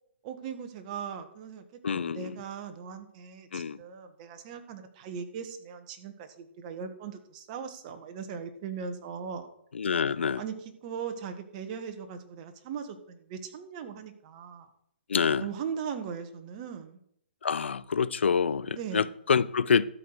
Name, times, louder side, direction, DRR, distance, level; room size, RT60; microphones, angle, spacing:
voice 1, 0.2-1.6 1.9-9.5 10.3-14.7 15.4-17.0 18.7-19.1, right 7 dB, 35° right, 1.4 m, -39 dB
voice 2, 1.8-2.3 3.5-3.8 9.7-10.4 15.1-15.4 17.4-19.9, left 6 dB, 80° left, 0.6 m, -26 dB
12.5 x 4.8 x 7.7 m
hypercardioid pair, 145°, 6 cm